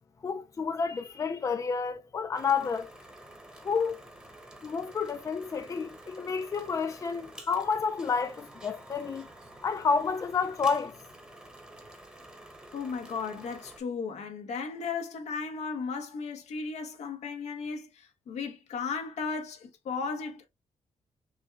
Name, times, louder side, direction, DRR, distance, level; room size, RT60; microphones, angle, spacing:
voice 1, 0.2-2.9 3.6-4.0 4.6-9.3 9.6-11.0, left 5 dB, 30° left, 0.5 m, -30 dB
sound 1, 2.3-13.8, right 1 dB, 10° right, 1.0 m, -50 dB
voice 2, 12.7-17.9 18.3-20.5, left 5 dB, 90° left, 1.1 m, -35 dB
6.2 x 2.3 x 3.2 m
wide cardioid pair, 155°, 11 cm